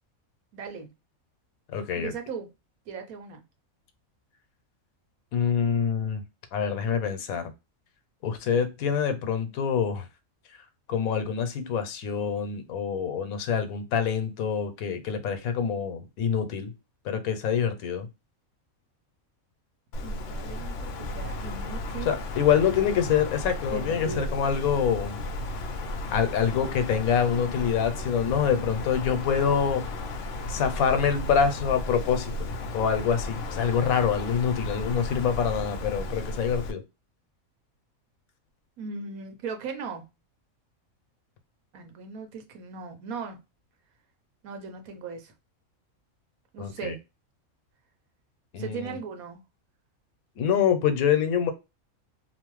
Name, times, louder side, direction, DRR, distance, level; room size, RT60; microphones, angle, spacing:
voice 1, 0.5-0.9 2.0-2.5 2.9-3.4 20.0-22.2 23.7-24.3 38.8-40.1 41.7-43.4 44.4-45.3 46.5-47.0 48.6-49.4, right 5 dB, 85° right, 1.2 m, -38 dB
voice 2, 1.7-2.1 5.3-6.2 6.5-7.5 8.2-10.1 10.9-16.7 17.0-18.1 22.1-25.2 26.1-29.8 30.5-32.3 32.7-36.8 46.6-46.9 48.5-48.9 50.4-51.5, left 7 dB, 90° left, 1.1 m, -26 dB
Wind, 19.9-36.7, left 2 dB, 65° left, 0.8 m, -34 dB
2.9 x 2.0 x 3.0 m
omnidirectional pair, 1.5 m